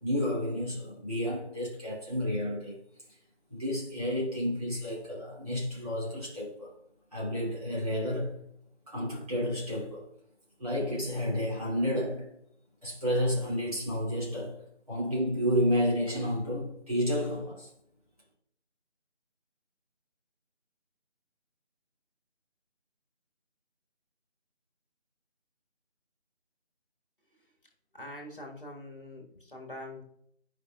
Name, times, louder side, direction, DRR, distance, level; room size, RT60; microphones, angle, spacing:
voice 1, 0.0-2.8 3.5-6.7 7.1-8.4 8.9-10.0 10.6-12.3 12.8-14.6 14.9-17.7, equal, 35° right, 2.4 m, -31 dB
voice 2, 27.9-30.0, left 1 dB, 50° left, 1.4 m, -44 dB
9.7 x 4.9 x 2.3 m
figure-of-eight pair, 175°, 35 cm